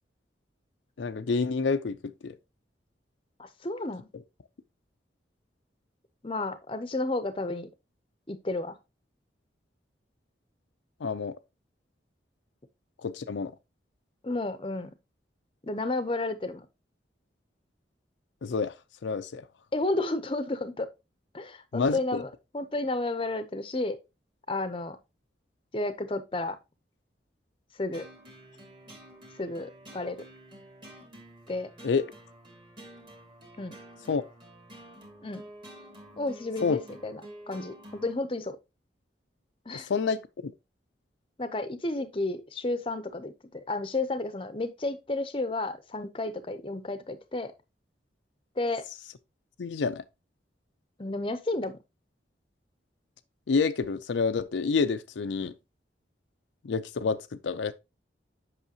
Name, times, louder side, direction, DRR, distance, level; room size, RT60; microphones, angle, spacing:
voice 1, 1.0-2.3 11.0-11.3 13.0-13.5 18.4-18.7 19.0-19.5 21.7-22.2 31.8-32.1 34.1-34.2 36.6-36.8 39.7-40.5 49.6-50.0 53.5-55.5 56.6-57.7, left 4 dB, 80° left, 0.5 m, -28 dB
voice 2, 3.4-4.1 6.2-7.7 8.3-8.8 14.2-14.9 15.6-16.7 19.7-20.9 21.3-24.0 24.5-25.0 25.7-26.6 27.8-28.1 29.4-30.2 31.5-31.7 33.6-33.8 35.2-35.4 36.2-37.2 37.5-38.6 39.7-39.9 41.4-47.5 48.6-48.8 51.0-51.8, left 2 dB, 30° left, 0.7 m, -32 dB
sound 1, 27.9-38.2, right 1 dB, 25° right, 1.8 m, -49 dB
8.2 x 5.6 x 2.8 m
head